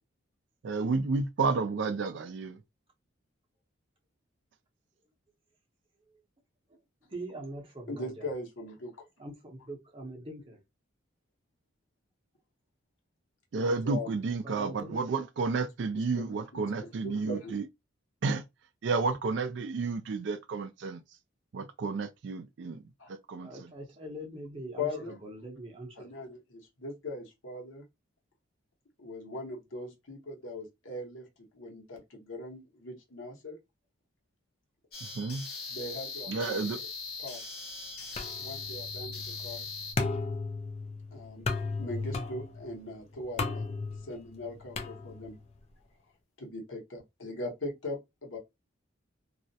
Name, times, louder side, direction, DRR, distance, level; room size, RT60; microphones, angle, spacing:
voice 1, 0.6-2.6 13.5-17.6 18.2-18.4 18.8-21.0 21.5-22.8 23.3-23.5 35.2-35.4 36.3-36.8, right 4 dB, 60° right, 0.3 m, -31 dB
voice 2, 6.7-8.3 9.2-10.6 14.4-15.1 23.4-26.3 38.3-38.4, right 1 dB, 25° right, 0.7 m, -43 dB
voice 3, 7.9-8.9 13.6-14.1 15.9-17.6 23.0-23.1 24.8-25.1 26.0-27.8 29.0-31.3 31.5-33.6 35.7-36.7 37.2-37.4 38.4-39.7 41.1-41.4 41.8-43.7 44.0-45.4 46.4-48.4, left 2 dB, 75° left, 0.9 m, -40 dB
sound 1, 34.9-39.9, left 4 dB, 50° left, 0.8 m, -40 dB
Metal Fire Escape, 38.2-45.5, left 3 dB, 30° left, 0.3 m, -36 dB
2.4 x 2.1 x 2.6 m
head